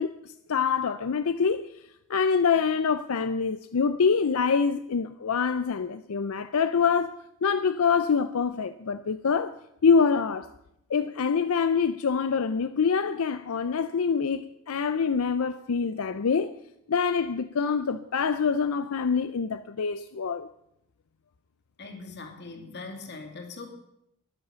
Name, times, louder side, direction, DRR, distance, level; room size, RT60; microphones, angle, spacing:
voice 1, 0.0-1.7 2.1-7.1 7.4-9.5 9.8-10.5 10.9-16.6 16.9-20.5, left 5 dB, 80° left, 0.5 m, -25 dB
voice 2, 21.8-23.7, left 3 dB, 50° left, 2.3 m, -41 dB
12.5 x 10.5 x 6.9 m
head